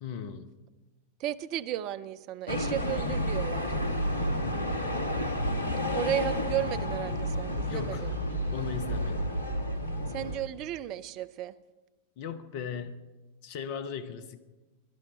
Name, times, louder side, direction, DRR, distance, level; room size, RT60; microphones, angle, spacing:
voice 1, 0.0-0.5 4.4-4.9 7.7-8.1 8.5-9.3 12.2-13.0 13.4-14.4, left 7 dB, 45° left, 11 dB, 0.8 m, -38 dB
voice 2, 1.2-3.7 5.9-8.1 10.1-11.5, right 13 dB, 40° right, 15 dB, 0.5 m, -34 dB
sound 1, 2.5-10.4, equal, 75° left, 1.3 m, -30 dB
18.0 x 11.0 x 4.2 m, 1.2 s
figure-of-eight pair, 90°, 0 cm